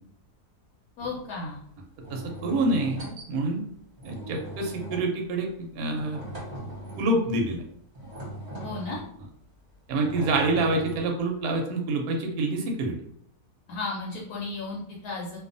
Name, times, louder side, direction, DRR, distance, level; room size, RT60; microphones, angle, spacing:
voice 1, 1.0-1.6 8.6-9.0 13.7-15.4, left 3 dB, 75° left, -3 dB, 1.1 m, -34 dB
sound 1, 1.0-1.2 2.0-3.3 4.0-5.2 6.0-7.2 7.9-9.1 9.9-11.3, right 1 dB, 40° right, 0.9 m, -39 dB
voice 2, 2.1-3.0 3.3-3.6 4.0-6.2 7.0-7.6 9.9-12.9, right 2 dB, 70° right, 1 dB, 1.0 m, -26 dB
2.5 x 2.3 x 2.5 m, 0.69 s
omnidirectional pair, 1.7 m